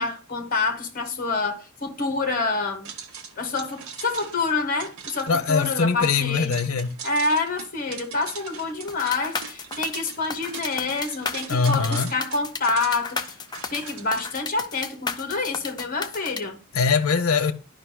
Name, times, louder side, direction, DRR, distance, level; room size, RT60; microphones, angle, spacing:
voice 1, 0.0-2.9 3.4-6.6 7.0-13.3 13.7-16.6, left 3 dB, 40° left, 1.1 m, -27 dB
sound 1, 2.8-14.2, right 6 dB, 85° right, 0.8 m, -41 dB
voice 2, 5.3-7.0 11.5-12.1 16.7-17.5, left 5 dB, 85° left, 0.7 m, -22 dB
sound 2, 8.9-16.4, left 5 dB, 20° left, 0.4 m, -33 dB
11.5 x 5.2 x 2.2 m
head